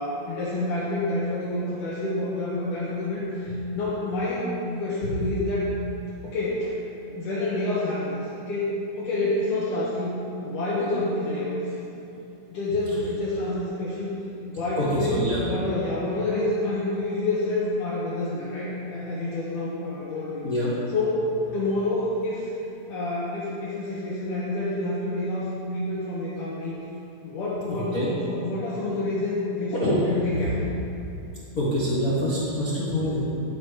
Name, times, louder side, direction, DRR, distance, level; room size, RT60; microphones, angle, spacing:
voice 1, 0.0-4.5 4.8-5.7 6.2-6.8 7.1-8.7 9.0-11.8 12.5-14.1 14.5-20.4 20.9-22.5 22.9-26.8 27.2-30.6, left 2 dB, 75° left, -8 dB, 2.7 m, -28 dB
voice 2, 14.8-15.4 20.4-20.7 27.7-28.1 29.7-30.0 31.6-33.2, equal, 50° left, -9 dB, 1.0 m, -25 dB
13.5 x 5.1 x 4.8 m, 2.9 s
omnidirectional pair, 3.7 m